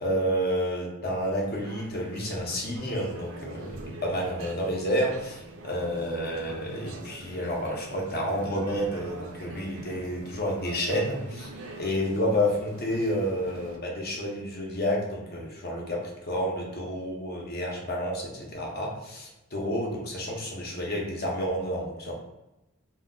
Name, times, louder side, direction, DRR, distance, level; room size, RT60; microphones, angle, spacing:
voice 1, 0.0-11.5 11.8-22.1, equal, 45° left, -1 dB, 0.6 m, -30 dB
sound 1, 1.5-13.8, right 2 dB, 65° right, 0.4 m, -44 dB
2.2 x 2.2 x 3.6 m, 0.98 s
head